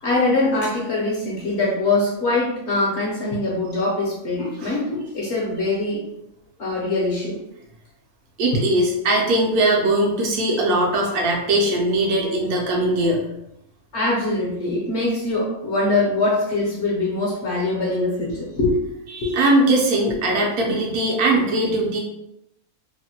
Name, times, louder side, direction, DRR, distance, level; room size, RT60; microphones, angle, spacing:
voice 1, 0.0-6.0 6.6-7.4 13.9-18.8 19.2-19.3, left 2 dB, 55° left, -5 dB, 0.9 m, -23 dB
voice 2, 8.4-13.2 19.1-22.0, right 1 dB, 75° right, 0 dB, 1.1 m, -20 dB
3.0 x 2.1 x 2.8 m, 0.83 s
omnidirectional pair, 1.7 m